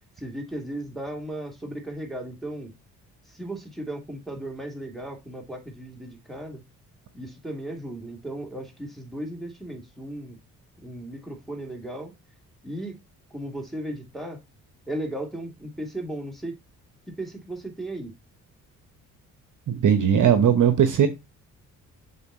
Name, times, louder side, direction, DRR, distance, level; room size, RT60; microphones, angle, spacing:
voice 1, 0.2-2.7 3.3-6.6 7.1-10.4 10.8-12.1 12.6-13.0 13.3-14.4 14.9-16.6 17.1-18.1, right 1 dB, ahead, 2.5 m, -36 dB
voice 2, 19.7-21.1, right 8 dB, 45° right, 1.0 m, -19 dB
7.1 x 4.1 x 4.3 m
figure-of-eight pair, 40°, 44 cm